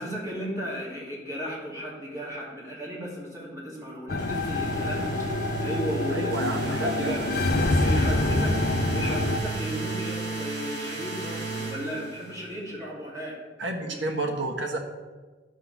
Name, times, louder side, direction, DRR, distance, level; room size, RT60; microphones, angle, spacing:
voice 1, 0.0-7.2 7.8-13.4 13.8-14.1, equal, 20° right, -5 dB, 2.7 m, -35 dB
sound 1, 4.1-9.4, left 2 dB, 60° left, 0.6 m, -26 dB
sound 2, 4.2-12.5, right 4 dB, 60° right, 2.7 m, -34 dB
voice 2, 6.1-7.8 13.6-14.8, right 1 dB, 75° right, 2 dB, 1.4 m, -31 dB
11.0 x 3.8 x 7.0 m, 1.3 s
head